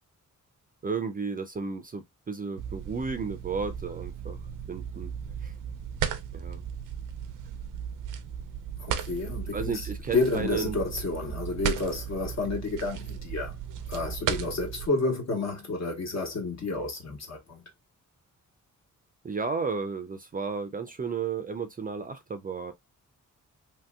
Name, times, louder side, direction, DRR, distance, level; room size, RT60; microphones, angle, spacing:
voice 1, 0.8-5.1 5.4-5.5 6.3-6.6 9.5-10.8 19.2-22.7, right 5 dB, 30° right, 0.4 m, -33 dB
sound 1, 2.6-14.9, right 8 dB, 90° right, 0.5 m, -36 dB
voice 2, 8.8-13.6 13.9-17.6, left 3 dB, 55° left, 1.2 m, -30 dB
3.0 x 2.7 x 2.2 m
wide cardioid pair, 110°, 31 cm